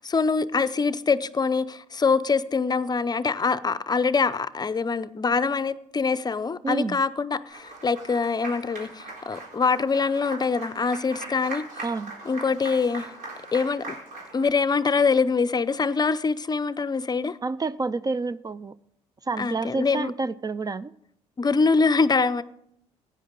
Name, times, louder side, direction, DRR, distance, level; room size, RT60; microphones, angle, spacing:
voice 1, 0.0-11.8 12.3-13.1 13.5-14.0 14.3-17.4 19.4-20.1 21.4-22.4, left 4 dB, 30° left, 0.6 m, -24 dB
voice 2, 6.6-7.0 11.8-12.1 17.4-18.7 19.2-20.9, right 3 dB, 25° right, 0.4 m, -29 dB
Applause, 7.5-14.5, right 2 dB, 65° right, 4.0 m, -40 dB
16.0 x 9.4 x 3.8 m
hypercardioid pair, 60°, 15 cm